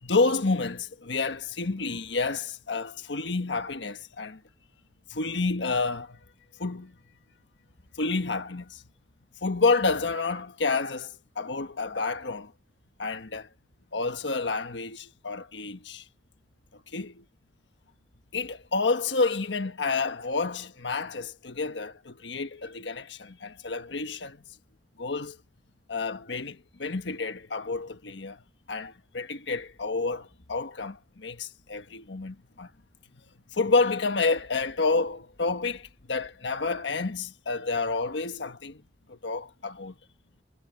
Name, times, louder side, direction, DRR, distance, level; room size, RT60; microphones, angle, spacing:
voice 1, 0.0-4.4 5.1-6.2 6.6-6.9 7.9-8.8 9.4-12.5 13.0-13.5 13.9-16.0 16.9-17.2 18.3-24.4 25.0-25.4 25.9-28.4 28.7-32.7 33.5-38.8 39.1-39.9, left 3 dB, 75° left, 1.3 m, -29 dB
head